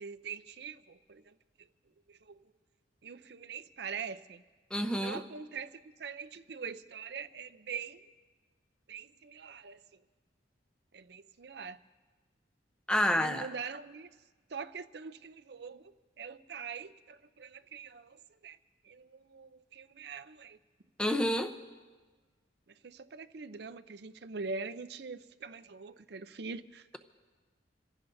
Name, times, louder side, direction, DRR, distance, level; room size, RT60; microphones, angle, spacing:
voice 1, 0.0-1.3 2.1-2.4 3.0-4.4 4.9-8.0 8.9-9.8 10.9-11.8 13.1-14.1 14.5-15.8 16.2-18.6 18.8-20.6 22.8-26.9, right 5 dB, 55° right, 12 dB, 0.5 m, -43 dB
voice 2, 4.7-5.2 12.9-13.5 21.0-21.5, equal, 5° left, 7 dB, 0.7 m, -29 dB
28.0 x 16.5 x 2.7 m, 1.4 s
head